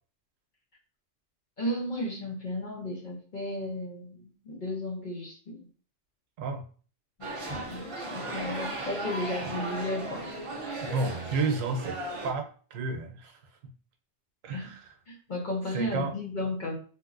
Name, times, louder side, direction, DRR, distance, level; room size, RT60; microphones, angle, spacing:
voice 1, 1.6-5.7 7.2-7.3 7.6-10.3 14.5-14.7 15.1-16.8, left 1 dB, 45° left, -1 dB, 0.8 m, -34 dB
sound 1, 7.2-12.3, right 1 dB, 35° right, 0.6 m, -36 dB
voice 2, 10.8-12.0 12.2-13.4 14.4-14.9 15.7-16.2, right 3 dB, 85° right, 4 dB, 1.0 m, -31 dB
3.7 x 2.7 x 2.5 m, 0.41 s
omnidirectional pair, 1.3 m